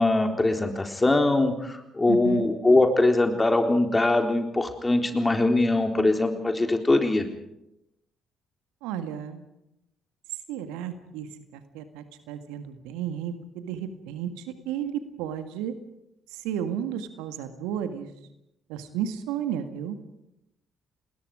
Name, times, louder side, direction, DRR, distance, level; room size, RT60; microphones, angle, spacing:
voice 1, 0.0-7.2, left 2 dB, 20° left, 4 dB, 3.9 m, -22 dB
voice 2, 2.1-2.5 8.8-9.4 10.5-11.3 11.5-15.7 16.3-18.1 18.7-20.0, right 9 dB, 70° right, 9 dB, 1.8 m, -33 dB
29.5 x 20.5 x 5.0 m, 0.85 s
figure-of-eight pair, 45°, 0 cm